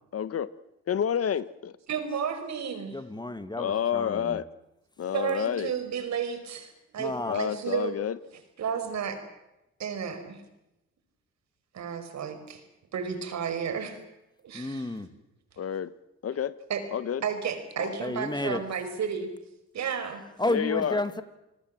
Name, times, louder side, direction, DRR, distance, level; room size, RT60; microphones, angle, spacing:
voice 1, 0.1-0.5 0.9-1.7 3.6-4.4 5.0-5.7 7.3-8.2 15.6-15.9 16.2-16.6 16.9-17.2 17.8-18.0 20.5-21.0, left 8 dB, 50° left, 16 dB, 1.2 m, -29 dB
voice 2, 1.9-3.0 5.1-7.9 8.6-9.2 9.8-10.4 11.7-12.6 12.9-14.0 14.4-14.9 16.7-16.9 17.2-19.3 19.7-20.2, right 7 dB, 65° right, 9 dB, 5.1 m, -32 dB
voice 3, 2.9-4.4 7.0-7.4 14.5-15.1 18.0-18.6 20.4-21.2, left 2 dB, 15° left, 11 dB, 2.0 m, -31 dB
28.0 x 20.0 x 7.7 m, 0.91 s
cardioid pair, 90°, 30 cm